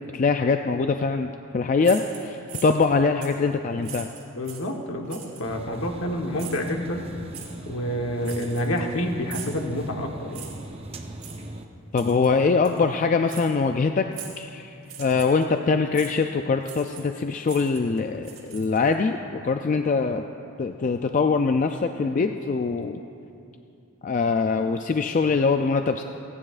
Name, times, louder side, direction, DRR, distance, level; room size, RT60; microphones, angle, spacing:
voice 1, 0.1-4.1 11.9-14.1 14.4-20.2 20.6-23.0 24.0-26.0, left 4 dB, 35° left, 6 dB, 0.3 m, -23 dB
sound 1, 1.8-2.9 3.2-3.4 3.8-4.7 5.1-5.5 6.4-6.7 7.3-7.5 8.2-8.9 9.3-9.6 10.3-10.7 11.2-11.4 12.0-12.3 12.6-12.8 13.3-13.5 14.1-14.4 14.8-15.4 15.9-16.1 16.6-17.2 17.4-18.9, right 8 dB, 80° right, 2.9 m, -41 dB
voice 2, 4.3-7.1 7.7-10.4, equal, 70° left, 2 dB, 1.2 m, -28 dB
sound 2, 5.4-11.6, right 1 dB, 25° right, 0.6 m, -40 dB
29.5 x 9.9 x 2.5 m, 2.7 s
head